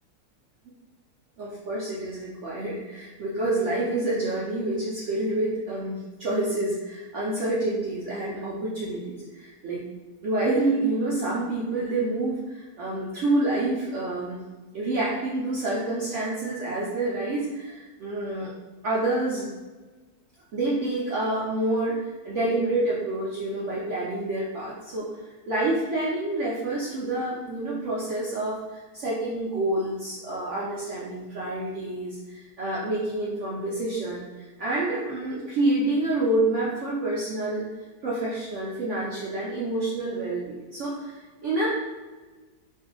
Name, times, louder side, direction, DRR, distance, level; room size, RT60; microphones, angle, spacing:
voice 1, 1.4-9.8 10.2-14.4 14.7-18.5 18.8-19.5 20.5-25.1 25.5-37.7 38.0-41.7, right 2 dB, 70° right, -6 dB, 0.7 m, -28 dB
2.6 x 2.4 x 3.6 m, 1.3 s
omnidirectional pair, 1.8 m